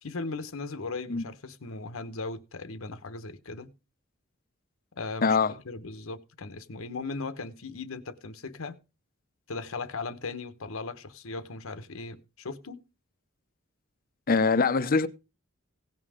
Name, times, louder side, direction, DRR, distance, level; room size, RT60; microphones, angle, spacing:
voice 1, 0.0-3.7 5.0-5.4 5.7-8.7 9.5-12.8, left 3 dB, 75° left, 1.0 m, -38 dB
voice 2, 5.2-5.5 14.3-15.1, left 4 dB, 45° left, 0.7 m, -23 dB
17.0 x 5.7 x 4.9 m
head